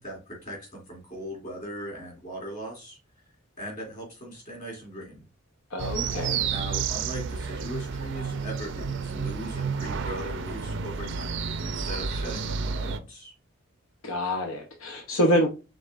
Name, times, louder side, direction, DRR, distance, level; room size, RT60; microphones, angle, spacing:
voice 1, 0.0-3.0 3.6-5.2 5.8-5.9 6.4-11.3 11.6-13.3, equal, 40° left, 2.6 m, -39 dB
voice 2, 5.7-6.4 14.0-15.5, equal, 85° left, 0.9 m, -26 dB
sound 1, 5.8-13.0, right 5 dB, 60° right, 0.4 m, -31 dB
5.1 x 3.7 x 2.5 m
head